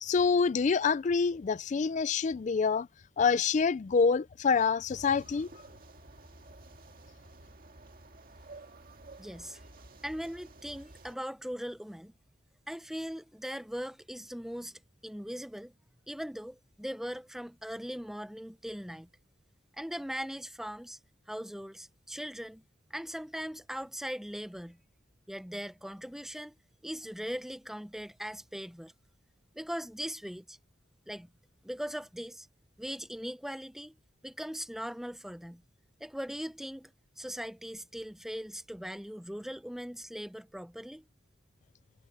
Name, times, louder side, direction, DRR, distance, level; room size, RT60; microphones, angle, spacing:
voice 1, 0.0-2.9 3.2-5.5, left 5 dB, 40° left, 0.3 m, -26 dB
sound 1, 4.9-11.2, right 2 dB, 50° right, 2.1 m, -52 dB
voice 2, 9.2-9.6 10.0-12.1 12.7-15.7 16.1-19.1 19.8-21.0 21.3-22.6 22.9-24.8 25.3-26.5 26.8-28.9 29.5-30.6 31.1-31.3 31.6-32.5 32.8-33.9 34.2-35.6 36.0-41.0, equal, ahead, 0.7 m, -40 dB
head